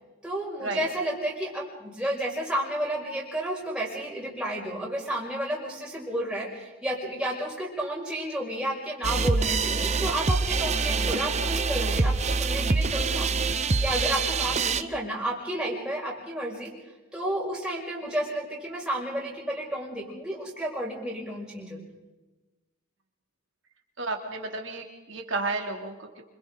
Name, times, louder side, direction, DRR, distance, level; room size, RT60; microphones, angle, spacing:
voice 1, 0.2-13.3 13.8-16.7 17.1-21.8, right 1 dB, 5° right, -5 dB, 6.0 m, -31 dB
sound 1, 9.0-14.8, right 4 dB, 30° right, 0.7 m, -25 dB
voice 2, 10.6-11.2 24.0-26.2, right 3 dB, 60° right, 2 dB, 3.0 m, -33 dB
27.0 x 25.5 x 3.9 m, 1.2 s
head